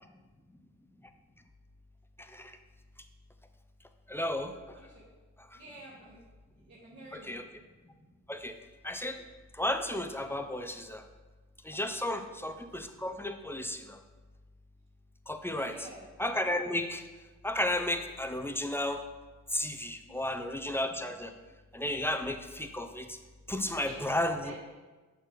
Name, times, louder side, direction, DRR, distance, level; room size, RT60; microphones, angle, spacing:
voice 1, 4.1-4.8 7.1-7.4 8.3-8.5 8.8-9.2 9.6-11.0 11.6-14.0 15.3-15.7 16.2-17.0 17.4-19.0 19.5-21.3 21.7-23.2 23.5-24.4, left 1 dB, 10° left, 6 dB, 0.5 m, -33 dB
voice 2, 4.7-5.1 5.5-6.2 6.6-7.4 12.0-12.3 15.5-16.1 20.1-20.4 23.8-24.1 24.4-24.6, right 1 dB, 35° right, -7 dB, 1.4 m, -49 dB
6.1 x 5.5 x 3.8 m, 1.3 s
cardioid pair, 90°, 30 cm